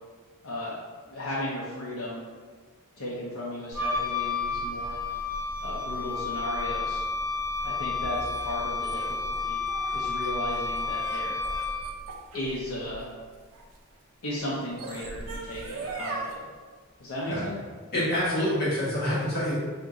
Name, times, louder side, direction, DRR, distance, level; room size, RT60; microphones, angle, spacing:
voice 1, 0.4-0.8 1.1-2.2 3.0-5.0 5.6-7.0 7.6-9.6 9.9-11.4 12.3-13.1 14.2-16.4 17.0-17.6, left 1 dB, 80° left, -7 dB, 0.6 m, -35 dB
Wind instrument woodwind instrument, 3.7-12.0, left 3 dB, 30° right, 1.1 m, -31 dB
sound 1, 7.6-13.8 14.5-16.3, right 3 dB, 65° right, 0.5 m, -40 dB
voice 2, 17.9-19.5, equal, 45° left, -9 dB, 1.3 m, -26 dB
2.8 x 2.6 x 3.6 m, 1.5 s
head